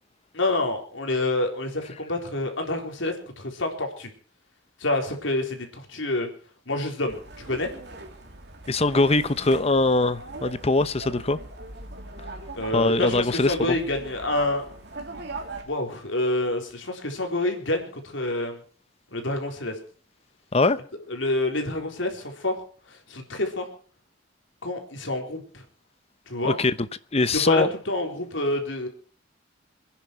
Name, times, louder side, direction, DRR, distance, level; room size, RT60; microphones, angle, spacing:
voice 1, 0.3-4.1 4.8-6.3 6.7-7.7 12.6-14.6 15.6-17.9 18.1-18.6 19.1-19.7 21.1-22.6 23.1-23.7 24.6-25.6 26.3-26.6 27.3-28.9, left 2 dB, 75° left, 4.0 m, -27 dB
sound 1, 7.1-15.6, right 2 dB, 60° right, 3.2 m, -41 dB
voice 2, 8.7-11.4 12.7-13.8 20.5-20.8 26.4-26.9 27.1-27.7, left 2 dB, 30° left, 0.8 m, -22 dB
27.0 x 10.5 x 4.7 m
head